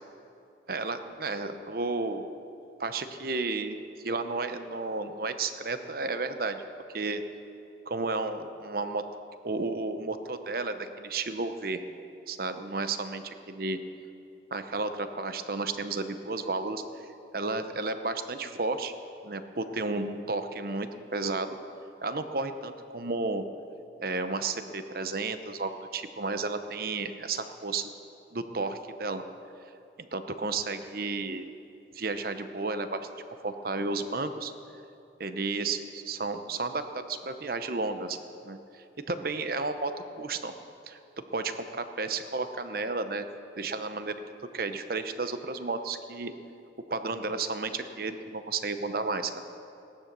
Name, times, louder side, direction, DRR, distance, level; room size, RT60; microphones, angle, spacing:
voice 1, 0.7-2.3 2.8-3.8 4.0-6.6 6.9-7.2 7.9-9.0 9.4-11.8 12.3-13.8 14.5-16.8 17.3-18.9 19.2-21.6 22.0-23.4 24.0-27.9 28.3-29.2 30.0-31.5 31.9-33.1 33.4-34.5 35.2-38.2 38.4-39.9 40.2-40.5 40.9-41.0 41.3-43.2 43.6-44.1 44.5-46.3 46.9-49.4, right 3 dB, 55° right, 9 dB, 0.8 m, -32 dB
17.5 x 11.5 x 6.8 m, 2.8 s
head